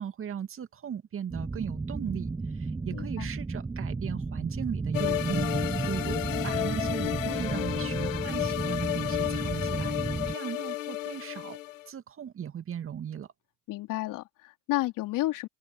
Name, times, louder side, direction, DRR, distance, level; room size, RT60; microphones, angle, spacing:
voice 1, 0.0-10.0 10.3-11.6 11.9-13.3, right 8 dB, 35° right, 2.4 m, -38 dB
sound 1, 1.3-10.3, right 3 dB, 10° right, 0.6 m, -33 dB
voice 2, 2.9-3.3 13.7-15.5, left 17 dB, 55° left, 3.4 m, -31 dB
sound 2, 4.9-11.8, left 15 dB, 80° left, 2.3 m, -32 dB
open air
hypercardioid pair, 75°, 39 cm